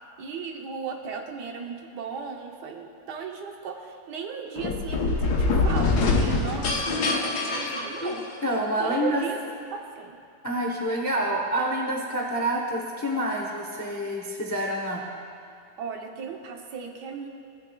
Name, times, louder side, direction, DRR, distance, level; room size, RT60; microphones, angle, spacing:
voice 1, 0.2-8.2 8.8-9.4 9.7-10.2 15.8-17.3, right 6 dB, 85° right, 3 dB, 1.4 m, -36 dB
sound 1, 4.6-8.6, left 3 dB, 75° left, 1.4 m, -25 dB
voice 2, 8.4-9.2 10.4-15.1, right 1 dB, 25° left, 0 dB, 0.4 m, -27 dB
16.5 x 8.8 x 2.3 m, 2.4 s
omnidirectional pair, 1.8 m